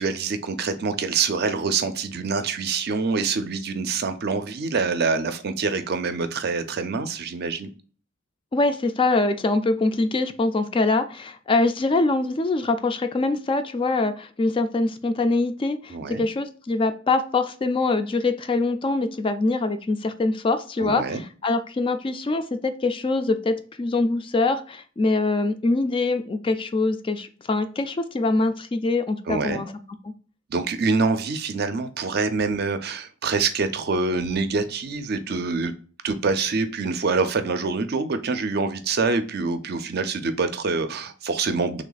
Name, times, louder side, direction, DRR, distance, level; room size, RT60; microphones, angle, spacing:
voice 1, 0.0-7.7 15.9-16.2 20.8-21.2 29.3-29.6 30.5-35.7 36.0-41.8, right 4 dB, 55° right, 9 dB, 0.5 m, -25 dB
voice 2, 8.5-29.7, left 3 dB, 25° left, 9 dB, 0.3 m, -24 dB
3.3 x 3.0 x 3.9 m, 0.41 s
head